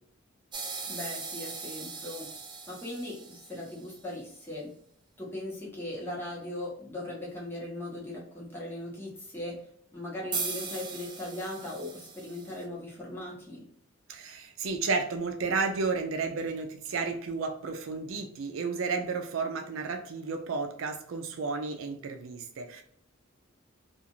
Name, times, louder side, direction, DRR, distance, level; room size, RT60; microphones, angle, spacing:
sound 1, 0.5-4.0 10.3-12.6, right 4 dB, 25° right, 0.4 m, -39 dB
voice 1, 0.9-2.3 2.7-4.7 5.2-13.7, left 1 dB, 10° left, -5 dB, 1.0 m, -39 dB
voice 2, 14.1-22.8, right 4 dB, 90° right, 5 dB, 0.4 m, -32 dB
2.4 x 2.4 x 2.9 m, 0.67 s
head